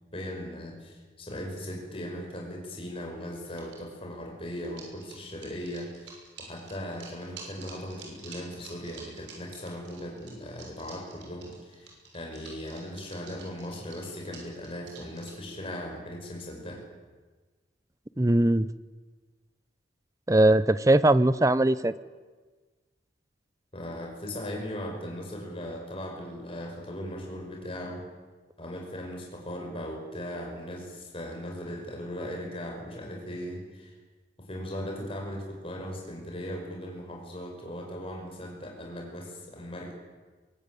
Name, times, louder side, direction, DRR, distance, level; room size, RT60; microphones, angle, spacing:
voice 1, 0.1-16.8 23.7-28.0 28.6-33.9 34.4-39.9, equal, 30° left, 1 dB, 5.4 m, -38 dB
sound 1, 3.3-3.8 4.6-15.4, right 5 dB, 75° right, 6.5 m, -48 dB
voice 2, 18.2-18.7 20.3-21.9, right 1 dB, 15° right, 16 dB, 0.6 m, -20 dB
23.0 x 17.5 x 9.2 m, 1.4 s
head